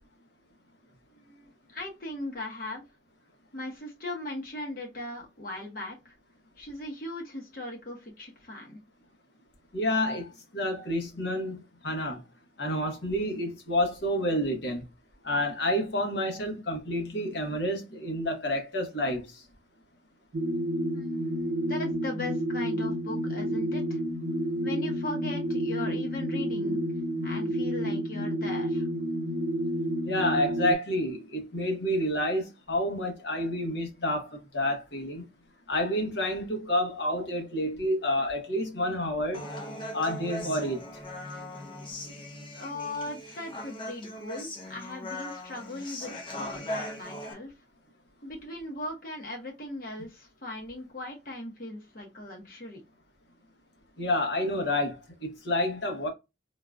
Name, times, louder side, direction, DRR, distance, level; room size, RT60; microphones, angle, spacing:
voice 1, 1.1-2.8 3.5-6.1 6.6-8.8 20.9-24.0 24.6-26.8 27.2-28.9 42.5-47.5 48.2-52.8, left 1 dB, 50° left, 1.0 m, -38 dB
voice 2, 9.7-12.2 12.6-14.8 15.2-19.4 30.0-35.2 35.7-39.4 39.9-40.8 54.0-56.1, left 1 dB, 80° left, 1.1 m, -29 dB
sound 1, 20.3-30.7, equal, 60° right, 0.4 m, -30 dB
Human voice, 39.3-47.3, left 1 dB, 30° left, 0.6 m, -39 dB
3.8 x 2.4 x 2.3 m
head